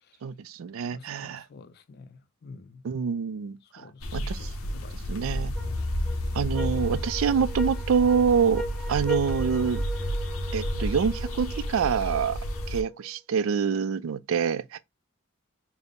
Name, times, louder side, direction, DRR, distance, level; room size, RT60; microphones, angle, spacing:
voice 1, 0.2-1.4 2.8-3.9 4.1-4.4 5.1-5.5 6.3-8.6 8.9-9.8 10.5-12.4 12.7-14.8, right 6 dB, 70° right, 0.4 m, -26 dB
voice 2, 0.9-2.8 3.6-5.1 5.6-6.2, left 4 dB, 50° left, 0.4 m, -49 dB
sound 1, 4.0-12.8, equal, 90° left, 0.6 m, -31 dB
sound 2, 5.6-13.1, right 1 dB, ahead, 0.8 m, -39 dB
3.5 x 2.0 x 3.8 m
head